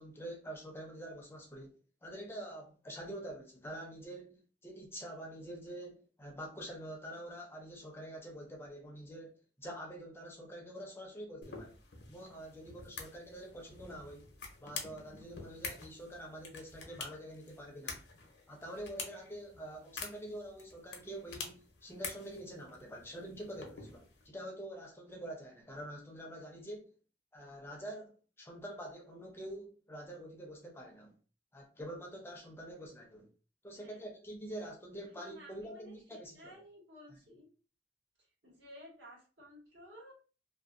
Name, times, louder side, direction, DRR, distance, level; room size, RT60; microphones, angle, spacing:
voice 1, 0.0-11.8 12.1-14.3 14.6-18.0 18.5-26.9 27.3-31.2 31.5-33.3 33.6-36.5 37.1-37.2, right 1 dB, 15° left, 0.4 m, -46 dB
sound 1, 11.4-24.3, left 5 dB, 60° left, 0.6 m, -48 dB
voice 2, 33.7-34.1 35.1-37.5 38.4-40.1, equal, 75° right, 1.4 m, -54 dB
2.6 x 2.2 x 2.4 m
head